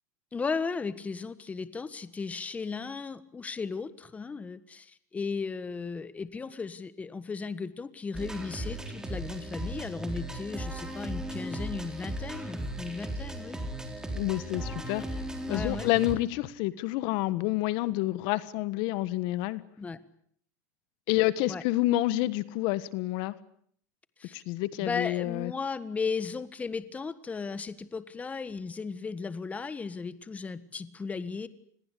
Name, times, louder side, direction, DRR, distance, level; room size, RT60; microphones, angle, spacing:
voice 1, 0.3-13.6 15.5-15.9 19.8-20.0 21.5-21.6 24.2-24.4 24.8-31.5, left 4 dB, 15° left, 14 dB, 1.4 m, -36 dB
sound 1, 8.1-16.2, right 1 dB, 5° right, 4.2 m, -36 dB
voice 2, 14.2-15.0 15.5-19.6 21.1-23.3 24.3-25.5, left 17 dB, 55° left, 16 dB, 1.4 m, -28 dB
28.5 x 21.5 x 8.4 m, 0.64 s
supercardioid pair, 130°, 9 cm